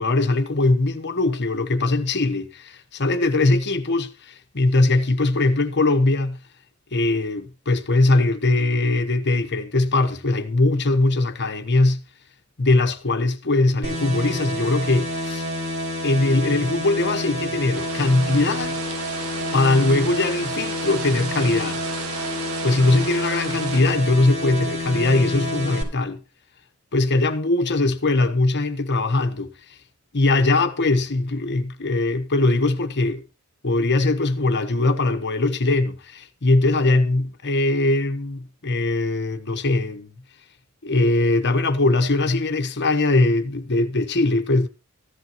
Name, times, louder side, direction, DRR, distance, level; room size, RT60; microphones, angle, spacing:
voice 1, 0.0-6.4 6.9-12.0 12.6-15.5 16.0-18.8 19.5-21.8 22.6-26.2 26.9-29.5 30.1-33.2 33.6-40.1 40.8-44.7, left 2 dB, 50° left, 1.2 m, -21 dB
sound 1, 13.8-25.8, left 1 dB, 55° right, 4.4 m, -29 dB
sound 2, 17.7-23.8, right 5 dB, 75° right, 1.2 m, -35 dB
14.5 x 11.5 x 3.0 m
head